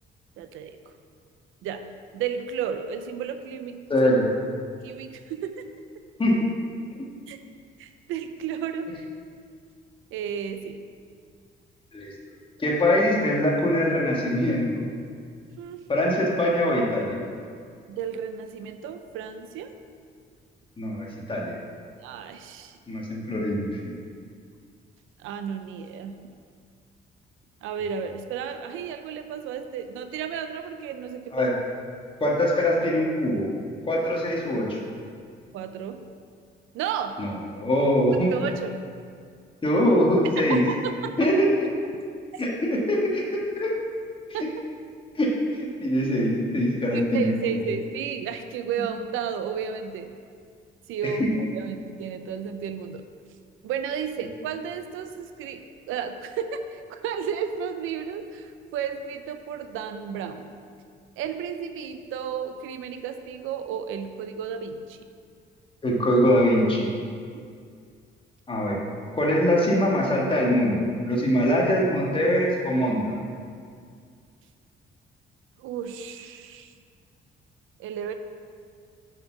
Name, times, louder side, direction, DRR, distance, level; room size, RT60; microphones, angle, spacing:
voice 1, 0.4-0.9 1.6-1.9 2.1-3.8 4.8-5.7 7.3-7.4 7.8-9.1 10.1-10.8 15.6-15.8 17.9-19.7 22.0-22.8 25.2-26.2 27.6-31.5 35.5-36.0 36.7-37.2 38.3-38.7 40.4-41.2 42.3-42.4 44.3-44.5 46.9-50.2 50.9-53.0 53.6-60.5 61.2-65.0 67.3-67.4 75.6-76.7 77.8-78.1, right 7 dB, 90° right, 8 dB, 0.5 m, -33 dB
voice 2, 3.9-4.3 6.2-6.3 11.9-12.1 12.6-14.8 15.9-17.2 20.8-21.5 22.9-24.0 31.3-31.5 32.2-33.5 33.8-34.8 37.2-38.3 39.6-40.6 41.2-41.7 42.4-43.7 45.1-47.4 51.2-51.3 65.8-66.9 68.5-68.8 69.1-73.1, equal, 25° left, -3 dB, 1.7 m, -23 dB
5.9 x 5.4 x 5.8 m, 2.2 s
cardioid pair, 90°, 20 cm